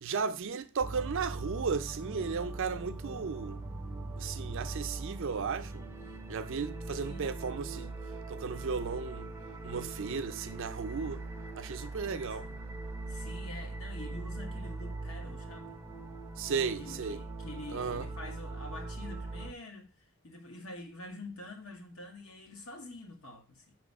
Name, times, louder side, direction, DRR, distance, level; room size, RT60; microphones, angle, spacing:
voice 1, 0.0-3.6 4.1-5.9 6.3-8.0 8.3-9.3 9.6-11.3 11.6-12.5 16.4-17.2 17.7-18.1, right 5 dB, 60° right, 0.5 m, -35 dB
sound 1, 0.8-19.5, right 2 dB, 10° right, 0.5 m, -41 dB
voice 2, 12.3-12.6 13.1-15.8 16.8-23.7, left 2 dB, 65° left, 1.2 m, -46 dB
5.9 x 3.1 x 5.2 m
head